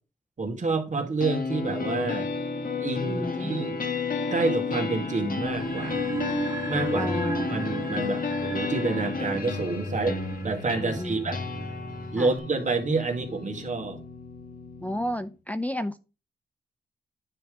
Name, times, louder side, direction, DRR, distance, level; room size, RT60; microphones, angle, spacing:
voice 1, 0.4-2.3 2.8-3.8 4.3-6.2 6.7-11.4 12.1-14.0, right 3 dB, 45° right, 2.0 m, -28 dB
sound 1, 1.2-15.2, left 4 dB, 55° left, 1.3 m, -32 dB
voice 2, 3.1-3.6 6.9-8.1 10.8-11.2 12.2-12.3 14.8-16.0, left 1 dB, 10° left, 0.5 m, -32 dB
sound 2, 5.5-12.4, right 2 dB, 20° right, 0.8 m, -35 dB
9.8 x 3.3 x 4.9 m
cardioid pair, 60°, 17 cm